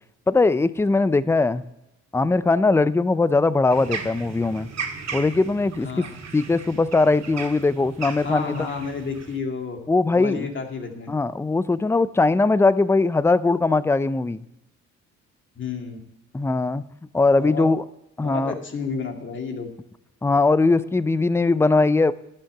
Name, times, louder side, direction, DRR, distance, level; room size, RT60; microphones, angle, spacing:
voice 1, 0.3-1.6 2.1-4.7 5.1-6.0 6.3-8.7 9.9-10.5 11.1-14.4 16.3-16.8 17.1-17.8 18.2-18.5 20.2-22.1, left 3 dB, 10° left, 15 dB, 0.4 m, -20 dB
sound 1, 3.7-9.4, right 5 dB, 60° right, 2.1 m, -36 dB
voice 2, 8.2-9.8 10.1-11.1 15.6-16.0 17.4-17.7 18.2-19.7, left 5 dB, 40° left, 3 dB, 2.2 m, -31 dB
11.5 x 6.5 x 7.2 m, 0.89 s
cardioid pair, 90°, 30 cm